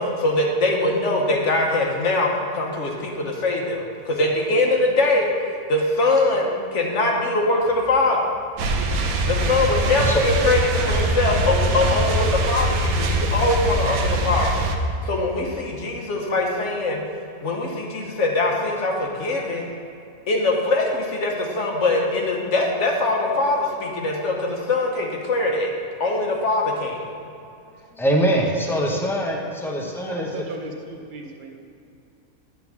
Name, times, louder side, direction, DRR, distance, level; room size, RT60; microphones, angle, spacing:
voice 1, 0.0-5.3 5.7-8.4 9.3-14.6 15.0-17.0 17.4-19.6 20.3-25.7 26.0-27.1, left 2 dB, 55° left, 0 dB, 1.3 m, -22 dB
sound 1, 8.6-14.8, right 1 dB, 75° right, 1.2 m, -22 dB
voice 2, 28.0-30.4, right 1 dB, 5° left, -1 dB, 0.5 m, -23 dB
voice 3, 29.6-31.8, right 2 dB, 40° right, 2 dB, 0.8 m, -37 dB
9.7 x 3.8 x 5.8 m, 2.6 s
omnidirectional pair, 1.5 m